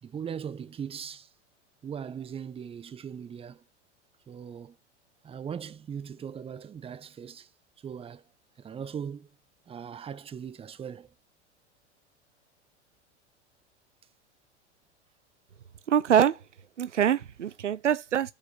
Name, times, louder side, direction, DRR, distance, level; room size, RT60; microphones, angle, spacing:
voice 1, 0.0-1.3 1.8-3.6 4.3-4.8 5.2-7.5 7.8-8.2 8.6-9.3 9.7-11.1, right 7 dB, 15° right, 0.7 m, -39 dB
voice 2, 15.9-16.4 16.8-18.3, right 9 dB, 90° right, 0.5 m, -24 dB
6.7 x 4.7 x 6.8 m
figure-of-eight pair, 90°, 35 cm